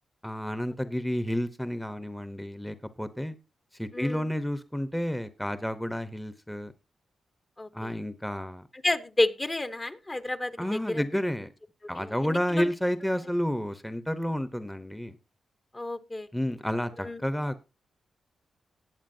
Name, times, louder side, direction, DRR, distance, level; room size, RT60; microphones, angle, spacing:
voice 1, 0.2-3.4 3.7-6.7 7.7-8.6 10.6-11.5 11.9-15.2 16.3-17.6, equal, 5° left, 0.8 m, -30 dB
voice 2, 3.9-4.3 7.6-7.9 8.7-11.0 12.0-12.7 15.7-16.3 17.0-17.2, left 2 dB, 25° left, 0.9 m, -31 dB
19.5 x 8.3 x 2.7 m
cardioid pair, 90°, 0 cm